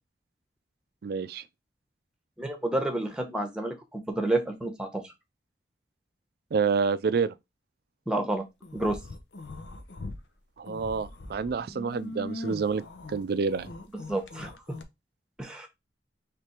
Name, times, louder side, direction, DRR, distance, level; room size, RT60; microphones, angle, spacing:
voice 1, 1.0-1.4 6.5-7.3 10.6-12.8 13.1-13.7, right 5 dB, 60° right, 0.4 m, -28 dB
voice 2, 2.4-5.0 8.1-8.4 8.7-9.0 14.1-14.5 15.4-15.7, right 1 dB, 5° right, 0.9 m, -29 dB
sound 1, 8.6-10.2 10.6-14.8, left 2 dB, 85° left, 0.7 m, -41 dB
3.4 x 3.3 x 4.3 m
head